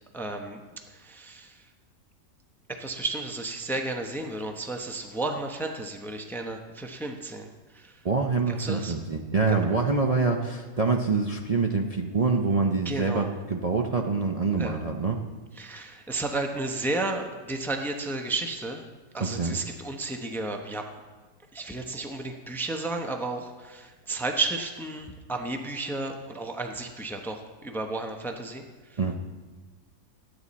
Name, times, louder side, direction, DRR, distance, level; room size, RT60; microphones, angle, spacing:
voice 1, 0.1-1.6 2.7-8.0 8.5-9.0 9.5-9.8 12.8-13.3 14.6-14.8 15.5-18.8 19.1-20.9 21.5-29.0, right 2 dB, 5° left, 4 dB, 0.4 m, -33 dB
voice 2, 8.0-15.2 19.2-19.6 29.0-29.1, right 4 dB, 75° right, 1 dB, 0.3 m, -25 dB
14.5 x 9.6 x 4.2 m, 1.3 s
omnidirectional pair, 1.8 m